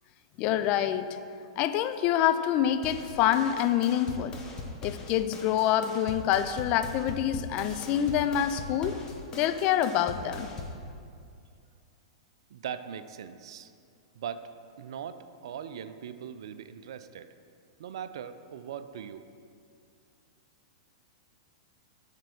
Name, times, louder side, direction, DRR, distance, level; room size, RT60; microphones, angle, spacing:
voice 1, 0.4-1.2 1.6-4.4 4.8-9.0 9.4-10.5, left 10 dB, 40° left, 10 dB, 0.4 m, -26 dB
sound 1, 2.8-10.8, left 3 dB, 25° left, 1.2 m, -41 dB
voice 2, 12.5-13.7 14.2-14.5 14.8-17.3 17.8-19.2, right 8 dB, 65° right, 11 dB, 0.4 m, -40 dB
6.6 x 4.5 x 6.4 m, 2.3 s
hypercardioid pair, 105°, 3 cm